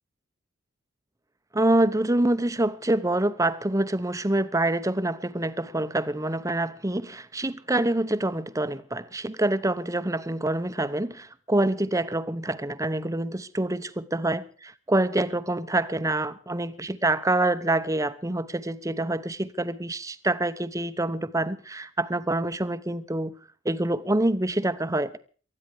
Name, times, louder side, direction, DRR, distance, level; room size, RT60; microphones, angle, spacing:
voice 1, 1.5-23.3 23.6-25.2, right 1 dB, 15° right, 0.9 m, -26 dB
19.5 x 14.0 x 4.8 m
head